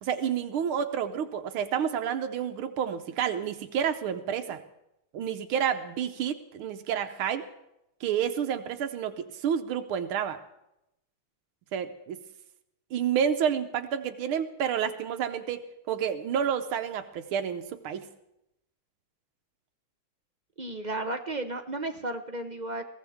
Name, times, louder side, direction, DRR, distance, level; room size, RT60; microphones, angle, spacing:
voice 1, 0.0-4.6 5.1-7.5 8.0-10.4 11.7-12.2 12.9-18.1, right 8 dB, 85° right, 8 dB, 1.8 m, -29 dB
voice 2, 20.6-22.8, right 2 dB, 45° right, 6 dB, 0.5 m, -33 dB
21.5 x 17.5 x 3.6 m, 0.84 s
omnidirectional pair, 2.3 m